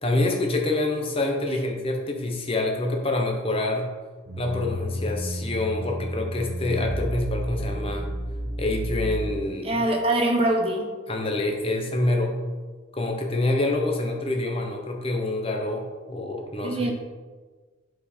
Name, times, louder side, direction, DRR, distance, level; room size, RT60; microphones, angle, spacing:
voice 1, 0.0-3.9 4.4-8.1 8.6-9.8 11.1-12.4 12.9-16.9, left 2 dB, 30° left, 2 dB, 0.9 m, -26 dB
sound 1, 4.3-9.7, equal, 70° right, 0.8 m, -31 dB
voice 2, 9.6-10.9 16.6-16.9, right 1 dB, 30° right, 2 dB, 0.9 m, -23 dB
8.5 x 4.6 x 4.3 m, 1.4 s
head